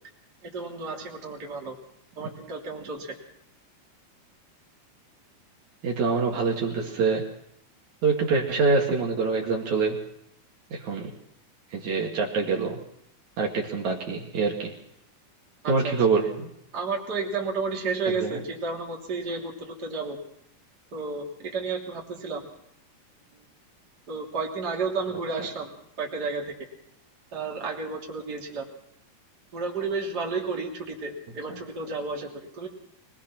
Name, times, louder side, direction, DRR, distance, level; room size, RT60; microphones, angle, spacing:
voice 1, 0.4-1.8 2.2-3.2 15.6-15.9 16.7-20.2 20.9-22.5 23.3-23.4 24.1-25.7 26.0-26.5 27.3-28.7 29.5-32.7, right 4 dB, 30° right, -1 dB, 3.3 m, -32 dB
voice 2, 5.8-7.3 8.0-10.0 10.7-11.1 11.7-12.8 13.4-14.8 15.7-16.5 18.1-18.4 31.5-31.6, right 4 dB, 65° right, -1 dB, 3.4 m, -25 dB
23.0 x 19.5 x 5.9 m, 0.74 s
omnidirectional pair, 3.8 m